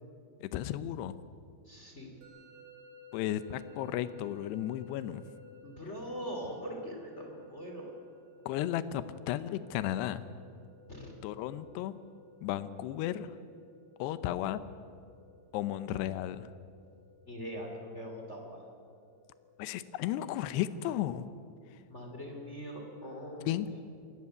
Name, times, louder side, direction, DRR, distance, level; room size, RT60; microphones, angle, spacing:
voice 1, 0.4-1.2 3.1-5.2 8.5-10.2 11.2-12.0 12.4-13.3 14.0-14.6 15.5-16.5 19.6-21.3 23.5-23.8, left 12 dB, 80° left, 14 dB, 2.5 m, -34 dB
voice 2, 1.6-2.1 5.6-7.9 10.9-11.1 17.3-18.6 21.9-23.6, equal, 20° left, 1 dB, 1.8 m, -42 dB
Musical instrument, 2.2-21.1, left 2 dB, 80° right, 4.8 m, -58 dB
25.5 x 14.5 x 9.7 m, 2.4 s
omnidirectional pair, 5.5 m